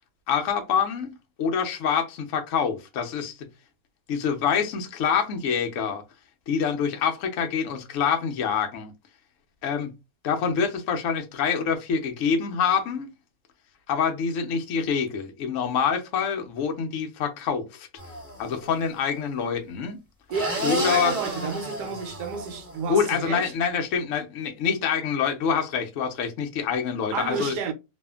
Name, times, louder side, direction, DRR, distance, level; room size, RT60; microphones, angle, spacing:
voice 1, 0.3-1.1 1.4-3.3 4.1-6.0 6.5-8.9 9.6-9.9 10.2-13.1 13.9-17.9 18.4-20.0 20.6-21.1 22.9-27.5, left 6 dB, 75° left, 0.7 m, -26 dB
sound 1, 18.0-18.7 20.3-22.9, equal, 10° right, 1.1 m, -33 dB
voice 2, 20.3-23.5 27.1-27.7, right 6 dB, 70° right, 1.1 m, -31 dB
2.7 x 2.4 x 2.2 m
omnidirectional pair, 2.0 m